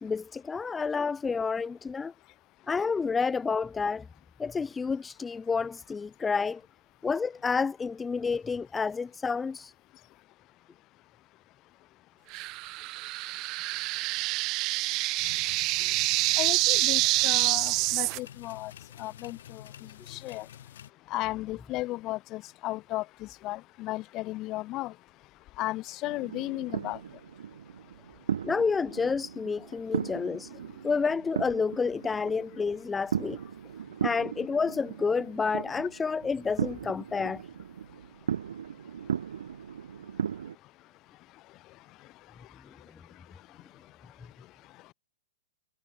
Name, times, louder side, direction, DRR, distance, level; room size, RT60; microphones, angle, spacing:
voice 1, 0.0-2.1 2.7-4.1 4.4-6.6 7.0-9.7 28.4-30.5 30.8-33.4 34.0-37.4, left 5 dB, 10° left, 0.6 m, -29 dB
sound 1, 12.3-18.2, right 22 dB, 35° right, 1.0 m, -27 dB
sound 2, 15.2-20.9, left 10 dB, 65° left, 6.6 m, -48 dB
voice 2, 16.4-18.7 19.0-19.6 20.1-20.4 21.1-23.0 23.4-24.9 25.6-27.0, left 18 dB, 30° left, 6.2 m, -34 dB
Firewors in the distance, 26.0-40.6, right 8 dB, 75° right, 4.5 m, -37 dB
hypercardioid pair, 130°, 0 cm